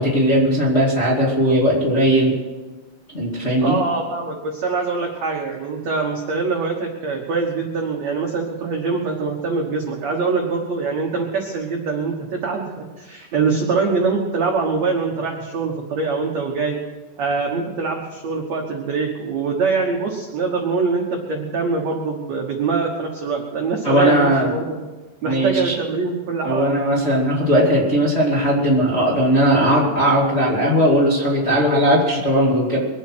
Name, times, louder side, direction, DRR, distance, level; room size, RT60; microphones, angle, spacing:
voice 1, 0.0-2.4 3.1-3.8 23.8-24.6 25.2-25.7 26.4-32.8, equal, 20° left, -4 dB, 1.6 m, -18 dB
voice 2, 3.6-16.8 17.2-24.8 25.2-26.7, right 4 dB, 65° right, 0 dB, 1.7 m, -23 dB
23.0 x 8.7 x 6.2 m, 1.2 s
omnidirectional pair, 5.1 m